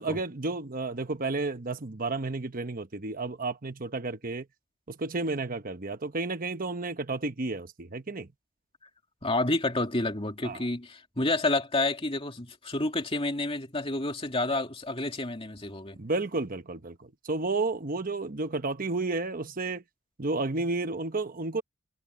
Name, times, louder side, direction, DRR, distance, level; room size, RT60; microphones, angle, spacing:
voice 1, 0.0-4.5 4.9-8.3 10.4-10.6 15.9-19.8 20.2-21.6, right 3 dB, 40° right, 1.1 m, -32 dB
voice 2, 9.2-16.0, left 2 dB, 25° left, 2.7 m, -29 dB
head